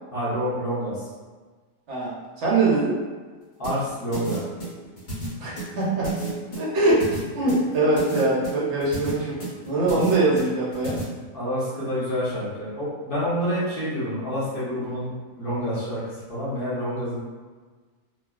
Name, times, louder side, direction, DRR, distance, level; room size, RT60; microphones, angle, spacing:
voice 1, 0.1-1.0 3.6-4.4 9.9-10.0 11.3-16.0 16.3-17.2, equal, 40° left, -10 dB, 1.0 m, -28 dB
voice 2, 1.9-2.9 5.4-6.1 6.6-7.1 7.3-9.4 9.6-11.0, right 2 dB, 60° right, -5 dB, 0.8 m, -22 dB
sound 1, 3.6-11.0, right 3 dB, 60° left, 1.6 m, -33 dB
3.1 x 2.2 x 2.3 m, 1.4 s
omnidirectional pair, 1.6 m